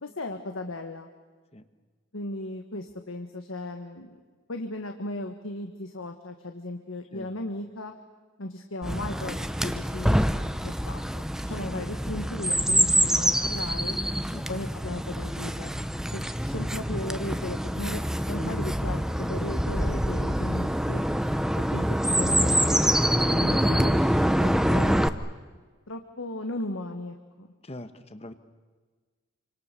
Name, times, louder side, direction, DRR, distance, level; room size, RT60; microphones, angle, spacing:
voice 1, 0.0-1.1 2.1-4.2 4.5-7.9 8.4-14.0 14.5-15.7 16.1-21.0 21.5-21.9 22.2-25.1 25.9-27.5, left 2 dB, 85° left, 5 dB, 1.5 m, -36 dB
Chirp tweet, 8.8-25.1, equal, 5° right, 0.7 m, -25 dB
voice 2, 27.6-28.3, left 1 dB, 30° left, 10 dB, 1.2 m, -42 dB
28.0 x 25.5 x 6.8 m, 1.4 s
head